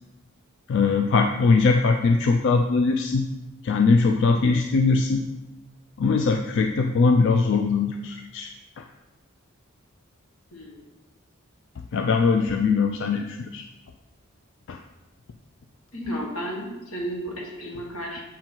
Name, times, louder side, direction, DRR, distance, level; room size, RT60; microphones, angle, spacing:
voice 1, 0.7-3.3 3.6-5.2 6.0-8.5 8.8-8.9 11.9-13.7 14.7-14.8, left 4 dB, 60° left, 4 dB, 0.4 m, -21 dB
voice 2, 10.5-10.8 15.9-18.2, equal, 85° left, -1 dB, 1.5 m, -33 dB
7.4 x 3.9 x 4.4 m, 1.1 s
head